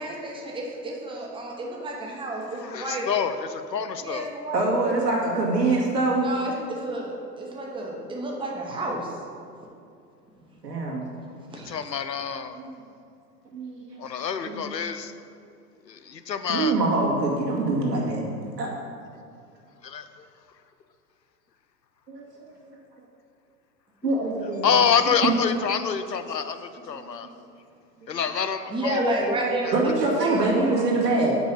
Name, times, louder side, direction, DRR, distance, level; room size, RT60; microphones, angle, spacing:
voice 1, 0.0-3.1 4.0-4.9 6.2-9.1 11.5-11.7 28.7-30.8, right 1 dB, 10° right, -2 dB, 1.1 m, -31 dB
voice 2, 2.4-4.3 11.5-12.6 14.0-15.1 15.9-16.7 19.8-20.3 24.6-27.3 28.1-29.0 29.6-29.8, left 7 dB, 85° left, 10 dB, 0.6 m, -27 dB
voice 3, 4.5-6.3 10.6-11.1 12.5-12.7 13.5-14.1 14.5-14.6 16.5-18.2 18.6-18.7 22.1-22.3 22.6-22.8 24.0-24.7 25.2-25.3 26.9-27.1 29.7-31.4, right 2 dB, 75° right, -4 dB, 2.1 m, -24 dB
6.0 x 5.4 x 6.8 m, 2.4 s
figure-of-eight pair, 95°, 49 cm